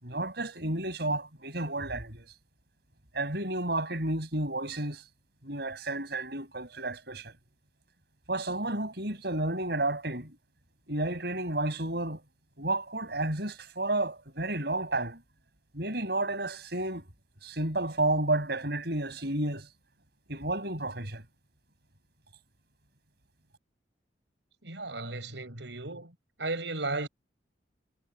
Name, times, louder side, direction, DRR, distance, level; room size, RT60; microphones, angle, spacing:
voice 1, 0.0-2.3 3.1-5.0 5.4-7.3 8.3-10.3 10.9-12.2 12.6-15.2 15.7-17.0 17.4-19.7 20.3-21.2, right 2 dB, 60° right, 7.3 m, -31 dB
voice 2, 24.6-26.1 26.4-27.1, right 2 dB, 75° right, 5.7 m, -35 dB
head